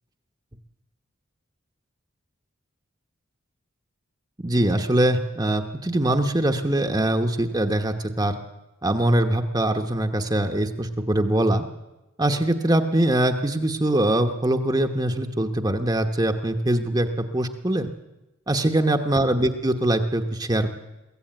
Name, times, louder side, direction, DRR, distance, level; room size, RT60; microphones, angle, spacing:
voice 1, 4.4-8.3 8.8-11.6 12.2-17.1 17.3-17.9 18.5-20.7, right 1 dB, 20° right, 5 dB, 1.0 m, -22 dB
22.5 x 15.5 x 9.1 m, 1.0 s
head